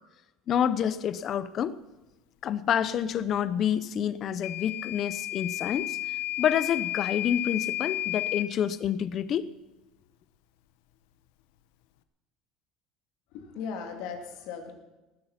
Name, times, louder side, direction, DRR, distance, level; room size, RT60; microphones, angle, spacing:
voice 1, 0.5-1.8 2.4-6.0 6.4-9.5, left 9 dB, 40° left, 16 dB, 0.7 m, -28 dB
Microwave oven / Alarm, 4.4-8.5, left 14 dB, 90° left, 0.9 m, -32 dB
voice 2, 13.3-14.7, left 6 dB, 70° left, 4 dB, 2.6 m, -37 dB
19.0 x 10.0 x 5.8 m, 1.1 s
cardioid pair, 150°, 0 cm